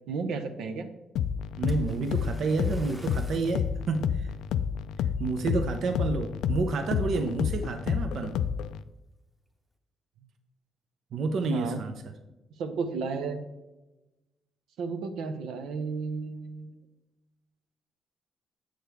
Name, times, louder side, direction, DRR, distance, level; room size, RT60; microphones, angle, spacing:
voice 1, 0.1-0.9 11.5-11.8 12.6-13.4 14.8-16.8, right 4 dB, 85° right, 7 dB, 0.8 m, -33 dB
sound 1, 1.2-8.8, left 8 dB, 80° left, 0.3 m, -30 dB
voice 2, 1.6-4.3 5.2-8.4 11.1-11.9, right 3 dB, 60° right, 6 dB, 0.6 m, -29 dB
Splash splatter, 1.7-3.7 4.4-4.6 5.2-5.3, right 1 dB, 5° right, 0.9 m, -50 dB
7.7 x 6.6 x 3.4 m, 1.0 s
cardioid pair, 145°, 0 cm